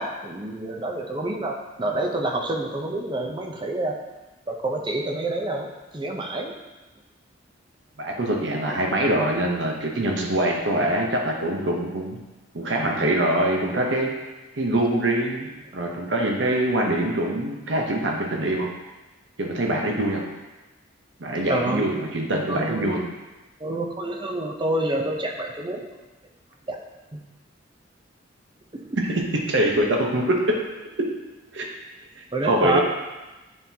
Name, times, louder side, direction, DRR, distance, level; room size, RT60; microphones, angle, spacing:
voice 1, 0.0-4.0 4.5-6.5 8.7-8.8 21.5-21.9 22.5-23.0 23.6-25.9 26.7-26.8 27.1-27.2 31.6-31.7 32.3-32.8, right 2 dB, 25° right, 1 dB, 0.6 m, -28 dB
voice 2, 8.0-12.2 12.5-14.1 14.6-18.7 19.4-20.2 21.2-23.1 29.0-30.6 31.5-31.7 32.4-32.8, right 1 dB, 65° right, 0 dB, 0.9 m, -24 dB
9.5 x 3.8 x 2.8 m, 1.1 s
head